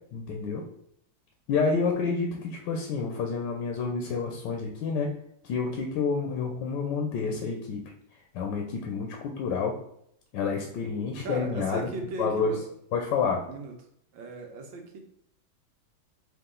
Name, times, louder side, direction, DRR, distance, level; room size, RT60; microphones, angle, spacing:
voice 1, 0.1-0.6 1.5-5.1 5.4-7.8 8.3-9.7 10.3-11.9 12.2-12.5 12.9-13.4, left 5 dB, 75° left, 2 dB, 1.3 m, -29 dB
voice 2, 11.2-12.6 13.4-13.8 14.1-15.0, right 3 dB, 85° right, 3 dB, 1.6 m, -37 dB
4.8 x 2.7 x 3.7 m, 0.70 s
omnidirectional pair, 2.1 m